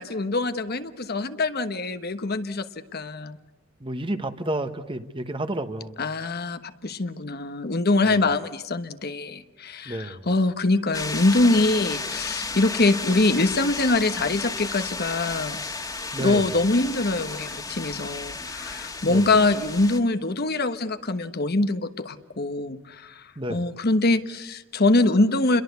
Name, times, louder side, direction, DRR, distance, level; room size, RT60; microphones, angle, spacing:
voice 1, 0.0-2.7 2.9-3.4 6.0-15.6 16.2-23.2 23.5-25.6, left 2 dB, 50° left, 10 dB, 1.2 m, -24 dB
voice 2, 3.8-6.0 8.0-8.2 9.8-10.3 16.1-16.5 19.0-19.3 23.4-23.7, right 1 dB, 25° right, 9 dB, 1.4 m, -31 dB
sound 1, 10.9-20.0, left 3 dB, 20° left, 2.0 m, -33 dB
29.5 x 22.5 x 8.2 m, 0.92 s
head